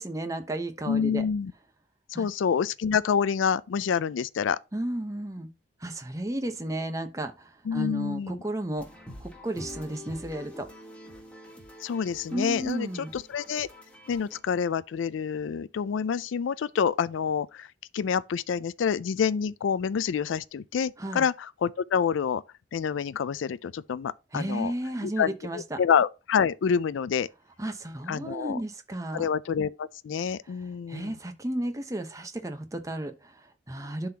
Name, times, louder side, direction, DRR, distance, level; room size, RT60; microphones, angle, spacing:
voice 1, 0.0-1.3 2.1-2.3 4.7-5.5 5.8-10.7 12.3-13.1 21.0-21.2 24.3-25.8 27.6-29.3 30.9-34.1, right 1 dB, 15° right, 0.9 m, -33 dB
voice 2, 0.9-1.5 2.1-4.6 7.7-8.4 11.8-12.9 13.1-13.7 14.1-17.7 17.9-22.4 22.7-24.7 25.0-27.3 28.1-28.6 29.1-31.1, left 7 dB, 85° left, 0.4 m, -27 dB
sound 1, 8.8-14.4, left 1 dB, 5° left, 1.4 m, -46 dB
11.5 x 3.9 x 2.8 m
head